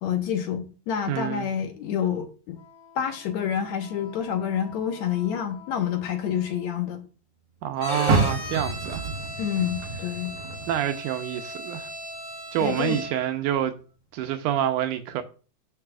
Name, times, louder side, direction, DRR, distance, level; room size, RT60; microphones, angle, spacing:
voice 1, 0.0-2.6 3.0-7.0 9.4-10.3 12.6-13.0, left 9 dB, 70° left, 2.2 m, -28 dB
voice 2, 1.1-1.5 7.6-9.0 10.7-11.9 12.5-13.7 14.1-15.2, right 10 dB, 85° right, 2.3 m, -27 dB
Wind instrument woodwind instrument, 2.5-7.0, left 4 dB, 90° left, 4.1 m, -50 dB
Bowed string instrument, 7.8-13.4, left 1 dB, 35° left, 2.2 m, -36 dB
Car, 8.0-11.3 11.7-13.1 13.5-13.6 14.2-14.3, right 4 dB, 60° right, 1.9 m, -29 dB
13.0 x 5.6 x 2.4 m
omnidirectional pair, 3.6 m